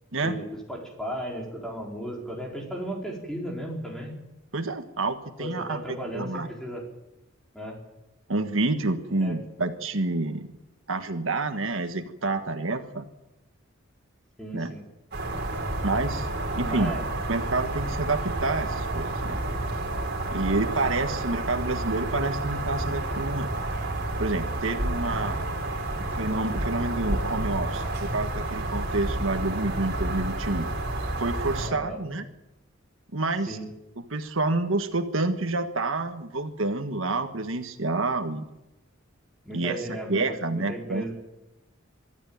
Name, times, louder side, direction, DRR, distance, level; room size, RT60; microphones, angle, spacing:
voice 1, 0.2-4.1 5.4-6.8 7.5-7.8 9.2-9.3 14.4-14.8 16.6-17.0 31.6-32.0 33.5-33.7 39.4-41.1, right 1 dB, 5° left, -1 dB, 4.6 m, -35 dB
voice 2, 4.5-6.5 8.3-10.5 10.9-13.1 14.5-14.7 15.8-16.3 16.5-16.9 17.3-19.4 20.3-23.5 24.2-25.5 26.1-30.7 31.2-32.2 33.1-33.6 34.1-38.5 39.5-41.1, right 2 dB, 75° right, 7 dB, 1.5 m, -28 dB
sound 1, 15.1-31.7, right 2 dB, 50° right, 4.4 m, -30 dB
24.5 x 13.5 x 8.8 m, 0.96 s
head